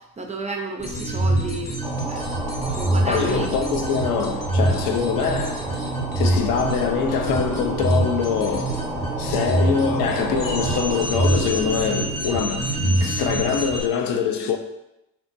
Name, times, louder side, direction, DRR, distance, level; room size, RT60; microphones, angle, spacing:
voice 1, 0.0-3.5, right 2 dB, 20° right, 0.4 m, -32 dB
sound 1, 0.8-13.8, right 2 dB, 40° left, 1.1 m, -25 dB
sound 2, 1.8-11.0, right 1 dB, ahead, 0.7 m, -33 dB
voice 2, 3.0-5.7 6.2-8.8 9.2-14.6, left 6 dB, 60° left, 0.5 m, -24 dB
sound 3, 8.1-13.1, equal, 85° left, 1.4 m, -40 dB
4.4 x 2.1 x 2.5 m
hypercardioid pair, 50°, 40 cm